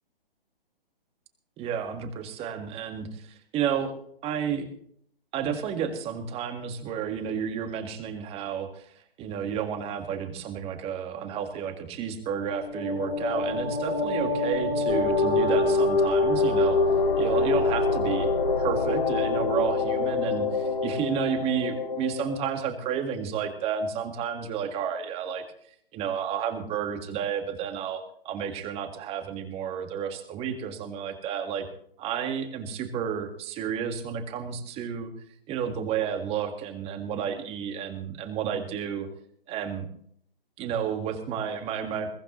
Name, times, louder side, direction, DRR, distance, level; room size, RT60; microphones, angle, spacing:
voice 1, 1.6-3.9 4.2-4.7 5.3-8.9 9.2-16.8 17.1-25.4 25.9-31.7 32.0-35.1 35.5-39.1 39.5-39.9 40.6-42.1, right 8 dB, 20° right, 7 dB, 1.8 m, -31 dB
sound 1, 12.4-22.6, left 3 dB, 70° left, 4.2 m, -25 dB
22.0 x 15.0 x 3.1 m, 0.65 s
hypercardioid pair, 135°, 29 cm